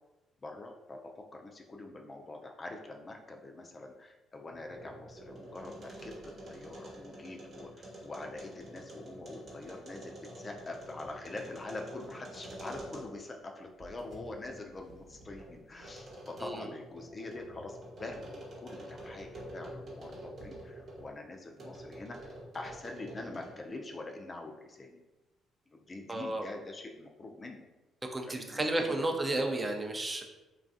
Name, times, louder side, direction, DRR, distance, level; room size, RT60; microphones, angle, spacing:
voice 1, 0.4-25.0 25.7-27.7 28.3-29.6, left 2 dB, 35° left, 2 dB, 0.4 m, -45 dB
sound 1, 4.4-13.3 13.8-21.1 21.6-23.7, right 1 dB, 55° right, 0.9 m, -48 dB
voice 2, 26.1-26.5 28.1-30.2, right 2 dB, 25° right, 3 dB, 0.5 m, -32 dB
3.1 x 2.3 x 2.5 m, 1.0 s
hypercardioid pair, 45°, 0 cm